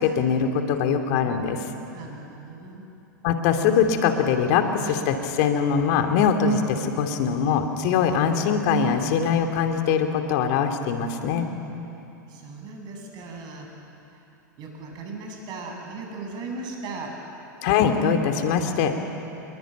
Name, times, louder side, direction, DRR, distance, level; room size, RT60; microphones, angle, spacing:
voice 1, 0.0-1.6 3.2-11.5 17.6-19.0, left 6 dB, 55° left, 6 dB, 2.6 m, -22 dB
voice 2, 1.8-2.8 12.3-13.7 14.1-14.2 14.6-17.1, right 3 dB, 45° right, 2 dB, 7.7 m, -37 dB
27.5 x 22.0 x 9.2 m, 2.8 s
hypercardioid pair, 95°, 10 cm